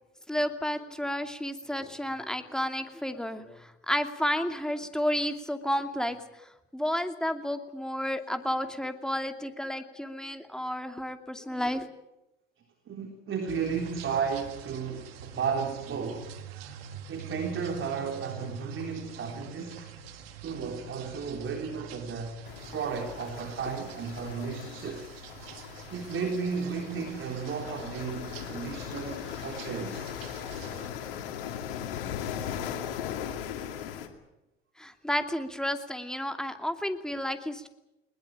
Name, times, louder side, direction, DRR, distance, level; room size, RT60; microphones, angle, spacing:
voice 1, 0.3-6.2 6.7-11.9 34.8-37.7, equal, ahead, 7 dB, 2.6 m, -31 dB
voice 2, 12.9-16.4 17.1-19.9 20.4-22.4 22.7-25.1 25.9-30.1, right 6 dB, 45° right, 4 dB, 3.7 m, -34 dB
sound 1, 13.5-30.9, right 7 dB, 80° right, 2.1 m, -46 dB
sound 2, 22.4-34.1, left 9 dB, 75° left, 2.5 m, -39 dB
21.0 x 20.5 x 8.9 m, 0.93 s
hypercardioid pair, 65°, 29 cm